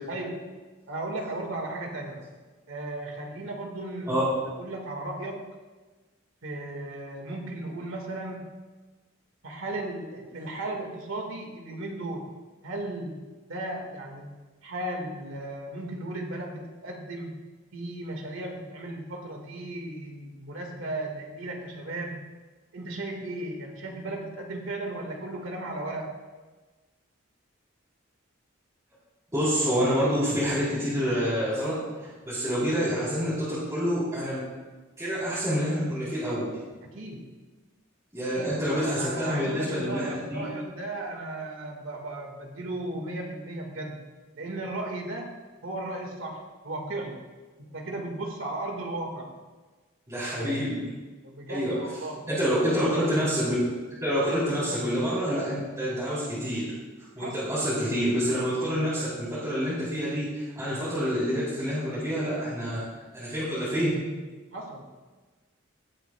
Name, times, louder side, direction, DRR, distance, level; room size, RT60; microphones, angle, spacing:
voice 1, 0.1-0.6 0.9-2.3 2.7-5.5 6.4-8.5 9.4-12.3 12.6-13.2 13.5-14.3 14.6-17.4 17.7-22.2 22.7-26.2 36.9-37.4 38.3-44.0 44.3-45.3 45.6-47.2 47.7-49.3 51.2-52.3 57.2-57.4 64.5-64.8, right 2 dB, 85° right, 2 dB, 1.7 m, -35 dB
voice 2, 29.3-34.4 35.0-36.5 38.1-40.4 50.1-50.8 51.5-51.8 52.3-53.6 54.0-56.7 57.2-62.8 63.1-63.9, equal, 15° right, -12 dB, 3.5 m, -27 dB
17.5 x 7.9 x 2.3 m, 1.3 s
head